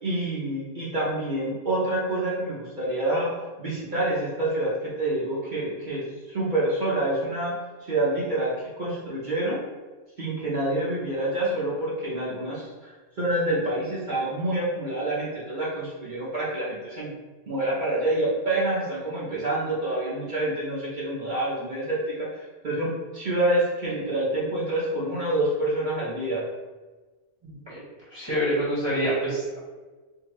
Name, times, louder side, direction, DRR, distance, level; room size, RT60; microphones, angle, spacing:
voice 1, 0.0-9.6 10.2-17.1 17.5-26.4, right 1 dB, 50° right, -8 dB, 0.9 m, -27 dB
voice 2, 27.4-27.8 28.1-29.6, equal, 25° right, -10 dB, 1.1 m, -26 dB
3.7 x 2.6 x 3.1 m, 1.3 s
omnidirectional pair, 1.1 m